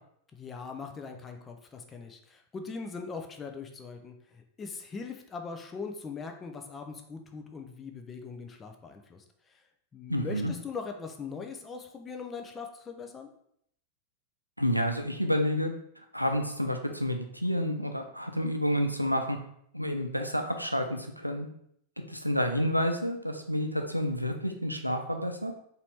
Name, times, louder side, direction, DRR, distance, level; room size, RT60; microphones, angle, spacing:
voice 1, 0.3-9.6 9.9-13.3, left 5 dB, 20° left, 4 dB, 0.6 m, -41 dB
voice 2, 10.1-10.5 14.6-15.7 16.1-19.4 19.7-21.5 22.1-25.5, equal, 90° right, 5 dB, 0.5 m, -29 dB
4.2 x 2.8 x 4.5 m, 0.69 s
figure-of-eight pair, 90°, 0 cm